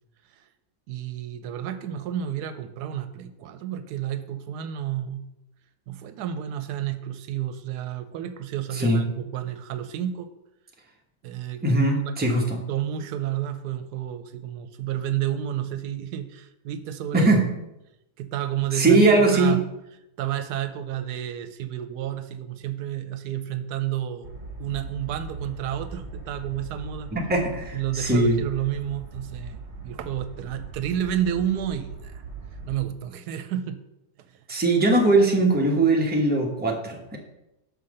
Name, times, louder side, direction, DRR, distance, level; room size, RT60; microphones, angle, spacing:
voice 1, 0.9-5.3 5.9-10.3 11.2-11.8 12.2-17.3 18.2-19.6 20.2-24.3 24.6-27.1 27.7-32.2 32.7-33.8 34.3-34.4, right 11 dB, 85° right, 10 dB, 1.2 m, -31 dB
voice 2, 11.6-12.6 17.1-17.5 18.7-19.6 27.1-28.4 34.5-37.2, right 2 dB, 5° right, -1 dB, 0.9 m, -20 dB
sound 1, 24.2-32.8, right 3 dB, 45° right, 1.3 m, -40 dB
5.7 x 5.4 x 6.4 m, 0.90 s
omnidirectional pair, 1.7 m